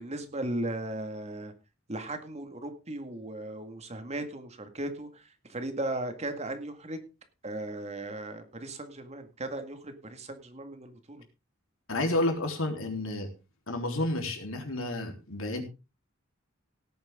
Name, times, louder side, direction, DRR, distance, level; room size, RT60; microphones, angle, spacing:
voice 1, 0.0-1.5 1.9-7.0 7.4-11.2, right 1 dB, 35° right, 7 dB, 2.1 m, -37 dB
voice 2, 11.9-13.3 13.7-15.6, left 1 dB, 90° left, 4 dB, 3.7 m, -30 dB
17.5 x 9.3 x 3.8 m, 0.29 s
head